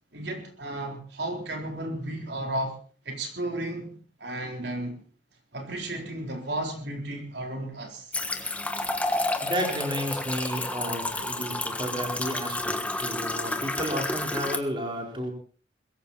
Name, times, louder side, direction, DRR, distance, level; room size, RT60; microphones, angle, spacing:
voice 1, 0.1-2.8 3.1-5.0 5.5-8.1, right 1 dB, 70° right, 3 dB, 4.0 m, -33 dB
sound 1, 8.1-14.6, left 2 dB, 10° left, 1.4 m, -30 dB
voice 2, 8.8-15.3, equal, 25° right, 2 dB, 4.5 m, -32 dB
22.0 x 15.0 x 4.3 m, 0.42 s
head